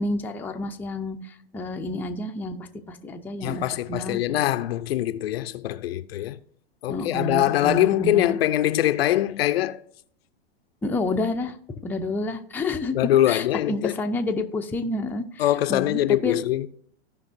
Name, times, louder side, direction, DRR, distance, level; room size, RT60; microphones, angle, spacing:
voice 1, 0.0-4.5 6.9-8.4 10.8-11.6 11.8-13.0 13.3-16.4, left 2 dB, 5° left, 0.6 m, -29 dB
voice 2, 3.4-6.4 6.8-9.8 12.9-13.9 15.4-16.7, left 13 dB, 70° left, 0.6 m, -23 dB
15.5 x 5.4 x 2.7 m
hypercardioid pair, 120°, 31 cm